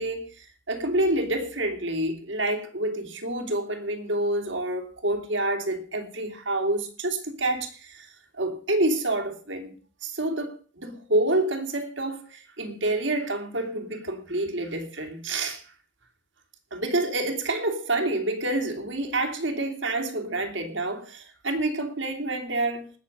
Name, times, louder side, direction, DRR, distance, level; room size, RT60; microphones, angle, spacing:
voice 1, 0.0-9.7 10.0-15.7 16.7-22.9, right 2 dB, 70° right, 2.7 m, -28 dB
20.0 x 7.0 x 5.3 m
head